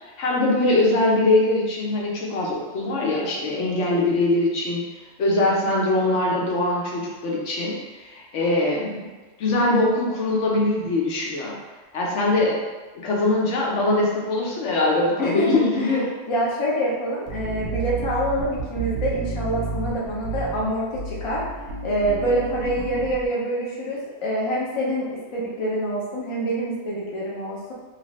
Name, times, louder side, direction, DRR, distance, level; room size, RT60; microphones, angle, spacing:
voice 1, 0.2-4.8 5.2-9.1 9.4-11.6 11.9-12.5 13.0-16.0, left 2 dB, 70° left, -3 dB, 0.9 m, -22 dB
voice 2, 15.2-21.4 21.8-27.7, right 1 dB, 40° left, -5 dB, 0.4 m, -26 dB
sound 1, 17.3-23.3, right 4 dB, 55° right, 0.7 m, -31 dB
2.7 x 2.4 x 3.0 m, 1.3 s
omnidirectional pair, 1.3 m